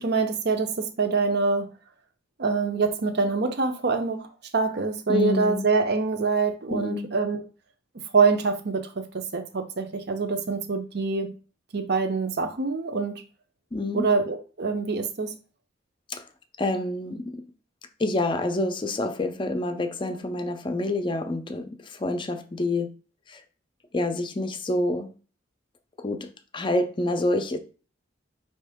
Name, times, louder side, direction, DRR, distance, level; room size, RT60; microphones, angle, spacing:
voice 1, 0.0-1.7 2.4-4.3 4.5-7.4 8.1-8.9 9.3-11.3 11.7-13.2 13.9-15.3, right 4 dB, 55° right, 0.7 m, -25 dB
voice 2, 5.1-5.7 6.7-7.1 13.7-14.0 16.1-16.2 16.6-17.4 18.0-22.9 23.3-23.4 23.9-25.1 26.0-27.6, left 2 dB, 25° left, 0.5 m, -27 dB
5.3 x 2.9 x 3.5 m
head